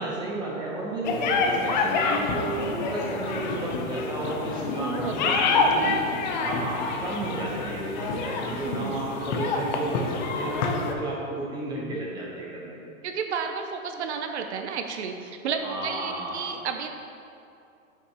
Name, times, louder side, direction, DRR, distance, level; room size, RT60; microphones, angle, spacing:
voice 1, 0.0-6.0 6.4-12.9 15.6-16.5, right 2 dB, 10° right, -4 dB, 0.7 m, -33 dB
sound 1, 1.0-10.9, left 4 dB, 35° left, 0.5 m, -27 dB
voice 2, 4.8-6.0 8.6-9.0 13.0-16.9, right 6 dB, 55° right, 5 dB, 0.6 m, -32 dB
8.2 x 5.8 x 2.9 m, 2.6 s
hypercardioid pair, 150°, 42 cm